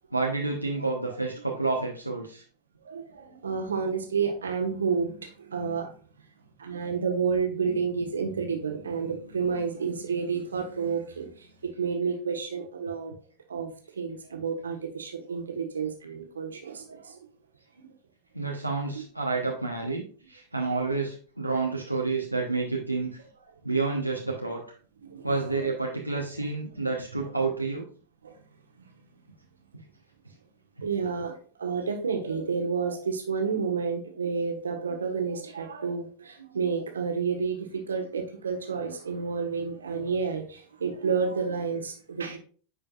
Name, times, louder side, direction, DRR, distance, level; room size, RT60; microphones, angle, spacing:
voice 1, 0.1-2.4 18.3-23.1 23.6-24.6 25.2-27.8, right 3 dB, 90° right, -1 dB, 0.9 m, -29 dB
voice 2, 2.8-5.9 6.6-11.3 11.6-13.1 13.5-13.7 14.0-17.2 17.8-17.9 25.0-25.3 28.2-28.3 30.8-31.3 31.6-42.4, right 5 dB, 70° right, 4 dB, 1.2 m, -30 dB
9.3 x 5.1 x 2.4 m, 0.41 s
figure-of-eight pair, 90°, 0 cm